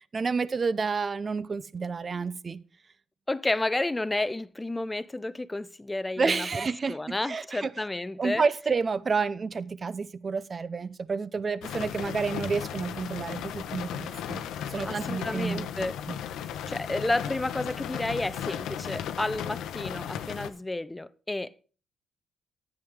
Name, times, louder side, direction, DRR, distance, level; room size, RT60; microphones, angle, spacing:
voice 1, 0.1-2.6 6.2-7.7 8.2-14.4 14.7-16.1, right 5 dB, 35° right, 0.6 m, -30 dB
voice 2, 3.3-6.5 6.9-8.4 14.8-16.0 16.7-21.5, left 2 dB, 15° left, 0.6 m, -31 dB
sound 1, 11.6-20.5, left 9 dB, 85° left, 0.8 m, -36 dB
10.5 x 9.7 x 3.7 m
cardioid pair, 90°, 0 cm